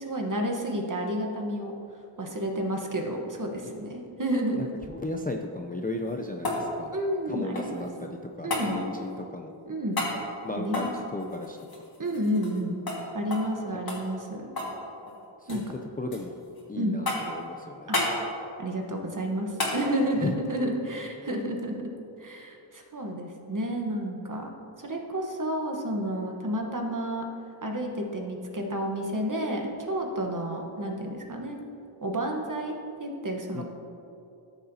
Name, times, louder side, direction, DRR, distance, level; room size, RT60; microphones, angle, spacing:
voice 1, 0.0-1.7 2.2-4.6 6.9-7.8 8.4-8.8 9.7-10.0 10.6-10.9 12.0-12.8 13.1-14.5 15.5-15.6 16.8-17.0 17.9-18.0 18.6-21.8 22.2-24.5 24.8-27.2 27.6-31.6 32.0-33.7, right 1 dB, 40° right, 2 dB, 1.1 m, -30 dB
voice 2, 4.6-6.9 7.3-9.5 10.4-11.6 15.4-15.6 16.0-16.4 16.7-17.9 20.2-20.4 33.5-33.7, left 2 dB, 20° left, 2 dB, 0.4 m, -35 dB
sound 1, 5.8-7.9 8.5-8.7 9.9-10.2 10.7-12.6 12.9-13.0 13.3-13.5 13.9-14.8 15.1-15.7 16.1-16.6 17.1-17.4 17.9-18.2 19.6-19.8 22.2-22.3, left 2 dB, 45° left, 1.8 m, -32 dB
13.5 x 6.8 x 2.7 m, 2.7 s
wide cardioid pair, 90°, 49 cm